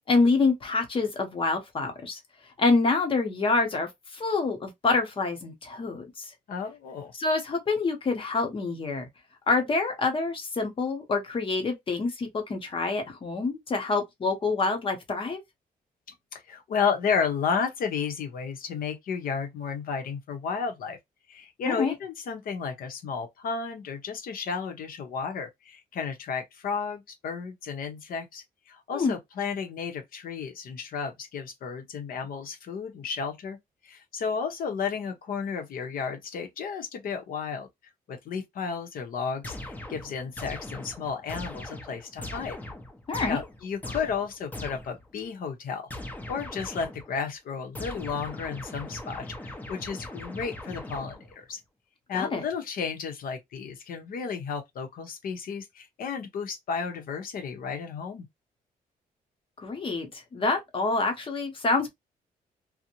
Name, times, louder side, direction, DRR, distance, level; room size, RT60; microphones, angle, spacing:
voice 1, 0.1-2.2 2.6-6.3 7.1-9.1 9.5-15.4 21.6-21.9 28.9-29.2 43.1-43.4 52.1-52.4 59.6-61.9, left 3 dB, 35° left, 0.8 m, -26 dB
voice 2, 6.5-7.1 16.3-21.0 21.3-33.6 33.8-37.7 38.1-42.6 43.3-45.8 46.3-51.2 51.5-51.6 52.1-58.3, left 6 dB, 65° left, 0.7 m, -33 dB
sound 1, 39.4-45.1 45.9-47.2 47.7-51.4, left 1 dB, 10° left, 0.5 m, -40 dB
2.6 x 2.1 x 2.8 m
cardioid pair, 140°, 16 cm